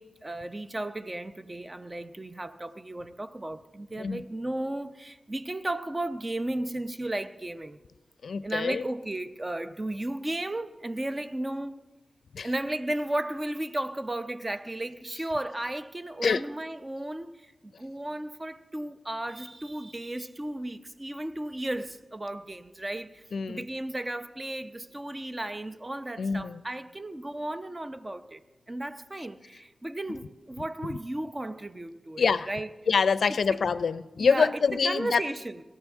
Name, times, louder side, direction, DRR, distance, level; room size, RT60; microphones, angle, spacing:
voice 1, 0.0-7.8 8.4-11.8 12.4-28.4 28.7-32.7 33.5-33.6 34.2-35.6, right 1 dB, 30° right, 0.7 m, -34 dB
voice 2, 8.2-8.8 12.3-12.5 16.2-16.4 23.3-23.7 26.2-26.6 32.2-32.5 32.9-35.2, left 5 dB, 80° left, 0.4 m, -25 dB
18.0 x 13.5 x 3.6 m
cardioid pair, 40°, 0 cm